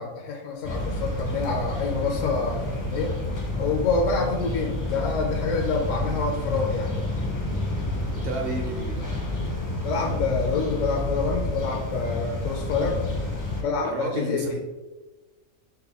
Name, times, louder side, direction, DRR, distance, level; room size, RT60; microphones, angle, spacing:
voice 1, 0.0-2.6 2.9-3.2 3.6-7.0 9.8-13.0 13.6-14.6, left 4 dB, 70° left, 1 dB, 0.9 m, -27 dB
sound 1, 0.6-13.6, left 1 dB, 20° left, 0.5 m, -29 dB
voice 2, 8.2-9.2 13.8-14.6, right 3 dB, 50° right, 1 dB, 0.8 m, -32 dB
5.4 x 2.2 x 4.0 m, 1.2 s
omnidirectional pair, 1.5 m